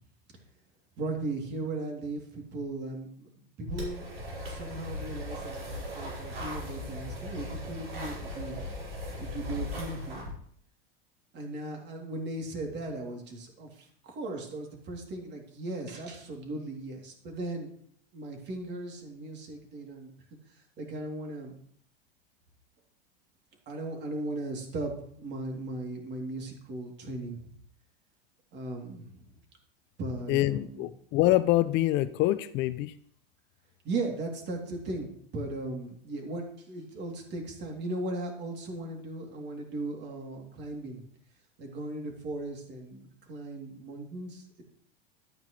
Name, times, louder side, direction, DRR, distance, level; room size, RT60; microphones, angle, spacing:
voice 1, 1.0-4.1 4.5-8.5 9.2-10.3 11.3-17.7 18.1-20.1 20.8-21.6 23.7-27.4 28.5-29.3 30.0-30.9 33.8-41.0 41.6-44.6, right 2 dB, 35° right, 1 dB, 3.1 m, -37 dB
sound 1, 3.7-10.3, left 1 dB, 85° right, 4.9 m, -38 dB
voice 2, 30.3-33.0, left 16 dB, 40° left, 15 dB, 0.5 m, -25 dB
12.0 x 9.2 x 3.3 m, 0.63 s
hypercardioid pair, 95°, 29 cm